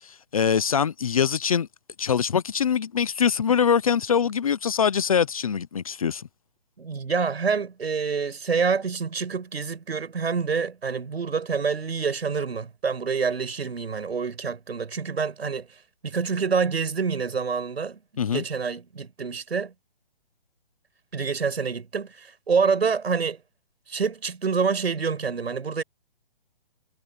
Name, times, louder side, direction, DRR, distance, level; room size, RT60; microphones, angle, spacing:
voice 1, 0.3-1.7 2.0-6.3 18.2-18.4, left 7 dB, 35° left, 0.7 m, -23 dB
voice 2, 6.8-15.7 16.0-18.0 18.3-19.7 21.1-23.4 23.9-25.8, right 5 dB, 90° right, 7.3 m, -27 dB
hypercardioid pair, 170°, 30 cm